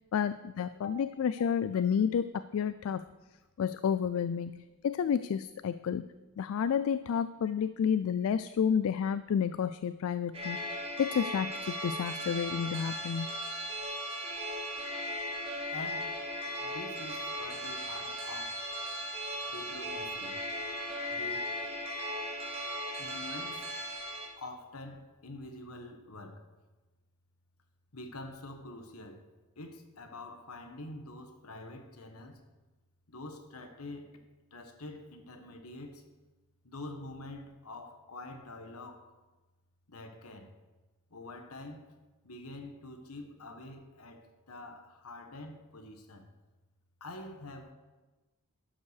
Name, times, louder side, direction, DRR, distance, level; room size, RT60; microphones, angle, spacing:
voice 1, 0.1-3.0 3.6-4.5 4.8-6.0 6.4-10.6 11.0-13.4, left 7 dB, 65° left, 0.3 m, -30 dB
sound 1, 10.3-24.3, equal, 25° right, 2.1 m, -37 dB
voice 2, 15.7-16.1 16.6-18.7 19.5-20.4 21.1-21.6 23.0-23.8 24.4-26.5 27.9-29.3 29.6-32.5 33.1-34.2 34.5-36.1 36.6-39.1 39.9-40.6 41.1-41.9 42.2-46.3 47.0-47.7, left 2 dB, 80° left, 1.3 m, -46 dB
11.5 x 5.5 x 6.5 m
head